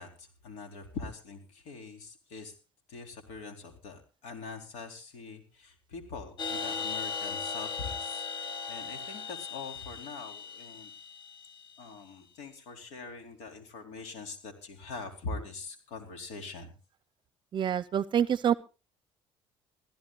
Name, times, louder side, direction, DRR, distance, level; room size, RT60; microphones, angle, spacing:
voice 1, 0.0-2.5 2.9-10.9 11.8-16.7, left 4 dB, 85° left, 5 dB, 4.4 m, -43 dB
sound 1, 6.4-12.0, left 5 dB, 45° left, 2.7 m, -38 dB
voice 2, 17.5-18.5, right 9 dB, 45° right, 17 dB, 0.7 m, -26 dB
23.5 x 15.5 x 2.5 m, 0.32 s
cardioid pair, 120°, 11 cm